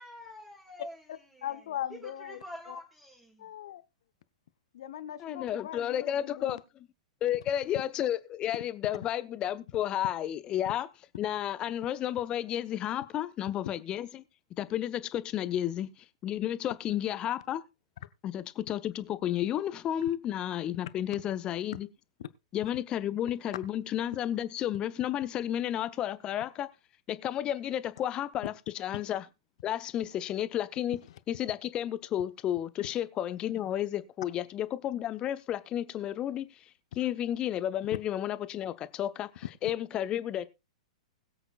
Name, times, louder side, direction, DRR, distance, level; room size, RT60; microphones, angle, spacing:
voice 1, 0.0-1.0 1.3-1.5 2.0-3.4, left 1 dB, 10° right, 1.9 m, -46 dB
voice 2, 1.1-2.8 3.4-3.8 4.7-6.6, left 11 dB, 55° left, 0.7 m, -40 dB
voice 3, 5.2-6.6 7.2-10.9 11.2-14.2 14.6-15.9 16.2-17.6 18.2-21.9 22.5-26.7 27.1-29.3 29.6-31.0 31.3-36.5 37.0-40.5, left 11 dB, 25° left, 0.8 m, -32 dB
21.0 x 8.0 x 2.4 m
figure-of-eight pair, 100°, 3 cm